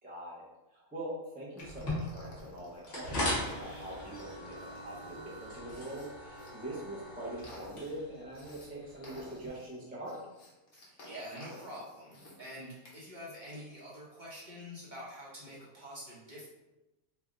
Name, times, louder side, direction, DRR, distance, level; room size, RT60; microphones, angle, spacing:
voice 1, 0.0-10.2, right 1 dB, 10° right, -6 dB, 0.5 m, -43 dB
sound 1, 1.6-6.5 7.0-8.7 9.0-12.4 12.7-13.0, left 2 dB, 65° left, 1.3 m, -54 dB
sound 2, 1.6-9.5, left 1 dB, 50° left, 1.4 m, -40 dB
voice 2, 10.7-16.5, equal, 40° right, -7 dB, 0.9 m, -46 dB
3.3 x 2.3 x 3.7 m, 1.0 s
omnidirectional pair, 1.5 m